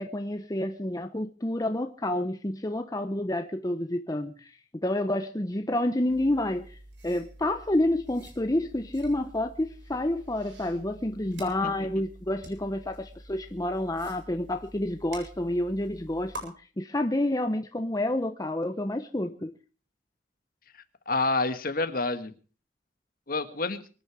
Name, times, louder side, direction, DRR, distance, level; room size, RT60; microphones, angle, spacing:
voice 1, 0.0-6.8 7.0-19.5, left 1 dB, 20° left, 0.8 m, -29 dB
sound 1, 6.1-16.4, right 1 dB, 75° right, 7.4 m, -47 dB
voice 2, 21.1-22.3 23.3-23.8, left 3 dB, 50° left, 1.6 m, -28 dB
24.5 x 10.0 x 4.9 m
head